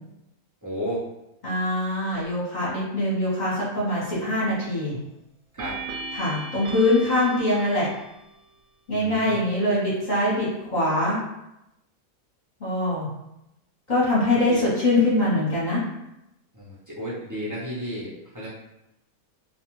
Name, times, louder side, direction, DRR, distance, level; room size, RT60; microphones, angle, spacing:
voice 1, 0.6-1.0 5.5-5.8 8.9-9.4 14.3-14.7 16.5-18.5, equal, 30° right, -9 dB, 0.3 m, -33 dB
voice 2, 1.4-5.0 6.1-7.9 8.9-11.2 12.6-13.1 13.9-15.8, left 1 dB, 35° left, -7 dB, 0.8 m, -23 dB
sound 1, 3.9-4.4 5.6-8.3, right 3 dB, 70° right, 0.9 m, -37 dB
2.4 x 2.3 x 3.0 m, 0.88 s
omnidirectional pair, 1.6 m